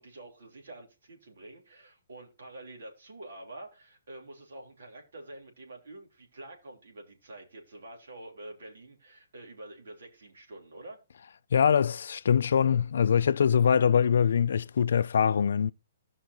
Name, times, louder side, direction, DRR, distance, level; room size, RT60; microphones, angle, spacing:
voice 1, 0.0-11.0, right 2 dB, 70° right, 3.4 m, -47 dB
voice 2, 11.5-15.7, left 7 dB, 60° left, 0.4 m, -23 dB
16.5 x 5.6 x 3.0 m
hypercardioid pair, 175°, 0 cm